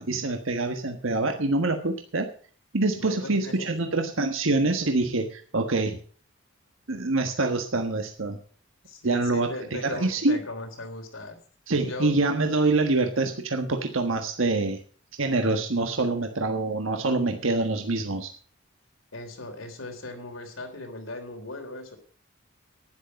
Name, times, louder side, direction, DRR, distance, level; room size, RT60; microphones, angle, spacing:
voice 1, 0.0-2.3 2.7-6.0 6.9-8.4 9.0-10.4 11.7-14.8 15.2-18.3, right 2 dB, 75° right, 5 dB, 1.4 m, -25 dB
voice 2, 3.0-3.7 8.9-11.4 11.9-12.1 19.1-22.0, left 2 dB, 80° left, 5 dB, 3.5 m, -38 dB
11.5 x 10.5 x 5.2 m, 0.43 s
head